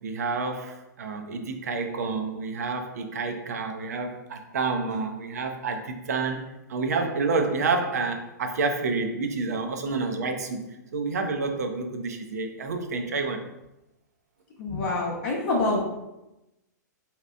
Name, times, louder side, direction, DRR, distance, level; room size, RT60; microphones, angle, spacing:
voice 1, 0.0-13.4, right 4 dB, 55° right, 5 dB, 0.5 m, -29 dB
voice 2, 14.6-15.8, left 2 dB, 40° left, -4 dB, 0.7 m, -26 dB
4.7 x 2.8 x 2.3 m, 0.93 s
figure-of-eight pair, 105°, 10 cm